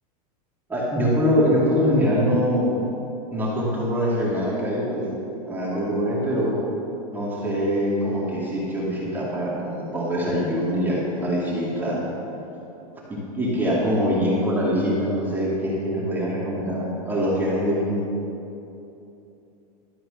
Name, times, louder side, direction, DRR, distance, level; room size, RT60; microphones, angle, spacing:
voice 1, 0.7-2.8 3.3-5.0 5.5-6.6 7.1-12.0 13.1-18.0, equal, 10° right, -6 dB, 2.3 m, -23 dB
12.5 x 7.8 x 6.5 m, 2.8 s
supercardioid pair, 155°, 20 cm